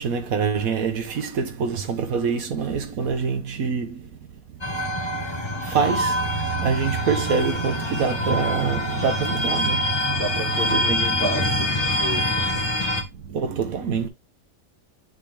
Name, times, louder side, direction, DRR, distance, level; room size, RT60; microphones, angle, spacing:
voice 1, 0.0-4.1 5.6-10.2 10.7-11.1 12.9-14.1, right 6 dB, 85° right, 1.5 m, -25 dB
sound 1, 4.6-13.0, left 1 dB, 20° left, 1.4 m, -25 dB
voice 2, 8.8-9.2 10.1-12.7 13.3-14.1, right 2 dB, 45° right, 2.0 m, -33 dB
9.5 x 4.1 x 3.4 m
omnidirectional pair, 1.5 m